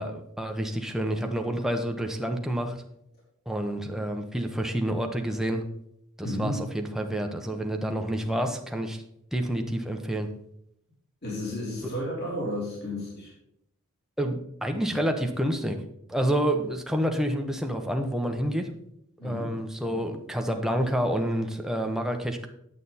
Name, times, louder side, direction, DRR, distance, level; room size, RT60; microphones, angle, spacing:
voice 1, 0.0-2.8 3.5-5.6 6.2-9.0 9.3-10.3 14.2-15.8 16.1-18.7 19.2-22.5, right 1 dB, ahead, 4 dB, 0.9 m, -28 dB
voice 2, 6.2-6.6 11.2-13.3 19.2-19.5, left 1 dB, 50° left, -4 dB, 3.1 m, -32 dB
9.2 x 8.1 x 4.2 m, 0.77 s
head